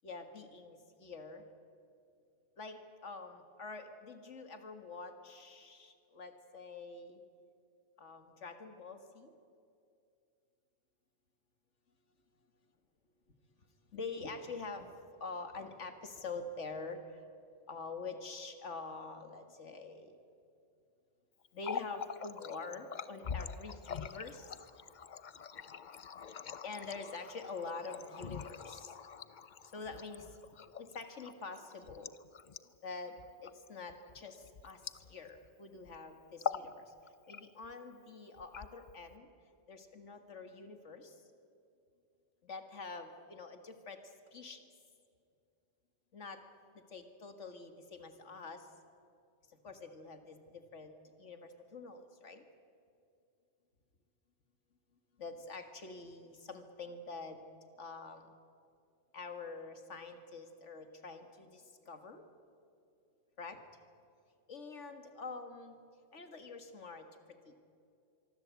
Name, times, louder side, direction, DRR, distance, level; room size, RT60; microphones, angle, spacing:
voice 1, 0.0-1.4 2.6-7.2 8.0-9.3 13.9-14.9 15.2-17.0 17.7-20.1 21.5-24.5 26.6-28.9 29.7-30.3 30.8-32.1 32.8-33.2 33.4-34.8 35.1-36.9 37.3-39.3 39.7-41.1 42.4-44.0 44.3-44.6 46.1-46.4 46.9-48.6 49.6-52.4 55.2-57.4 57.8-58.3 59.1-62.2 63.4-63.6 64.5-65.8 66.1-67.1 67.5-67.6, left 4 dB, 80° left, 7 dB, 2.1 m, -46 dB
Water tap faucet, 21.5-35.5 35.8-36.0 36.3-36.7 37.1-37.7 38.4-39.1, left 7 dB, 45° left, 0.8 m, -44 dB
25.0 x 23.5 x 8.3 m, 2.5 s
omnidirectional pair, 1.2 m